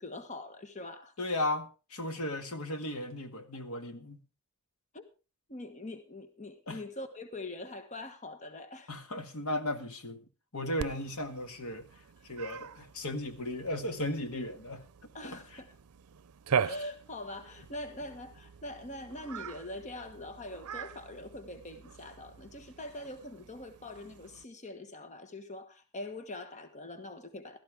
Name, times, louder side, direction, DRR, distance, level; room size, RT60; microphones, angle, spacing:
voice 1, 0.0-1.1 4.9-5.0 5.5-8.9 15.1-15.7 16.6-27.6, left 2 dB, 35° left, 1.3 m, -43 dB
voice 2, 1.2-4.2 6.7-6.8 8.9-10.2 10.5-11.9 12.2-14.8 15.2-15.6, left 1 dB, 80° left, 1.8 m, -36 dB
Cat, 10.8-24.4, right 7 dB, 90° right, 0.5 m, -41 dB
16.5 x 13.0 x 3.5 m
head